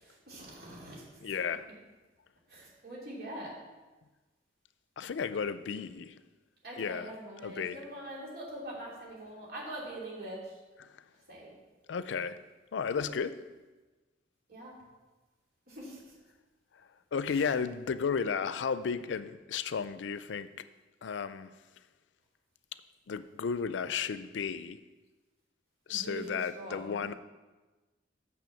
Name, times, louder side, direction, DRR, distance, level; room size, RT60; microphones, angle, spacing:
voice 1, 0.0-1.4 2.5-3.5 6.6-10.6 11.3-11.5 12.9-13.2 14.5-14.7 15.7-16.1 17.3-17.4 25.9-27.1, right 1 dB, 55° right, 2.8 m, -44 dB
voice 2, 1.2-1.7 5.0-6.1 6.8-7.1 7.4-7.8 10.8-10.9 11.9-12.4 12.7-13.4 17.1-20.5 21.0-21.5 23.1-24.8 25.9-27.1, left 6 dB, 85° left, 0.4 m, -33 dB
6.1 x 6.1 x 7.1 m
head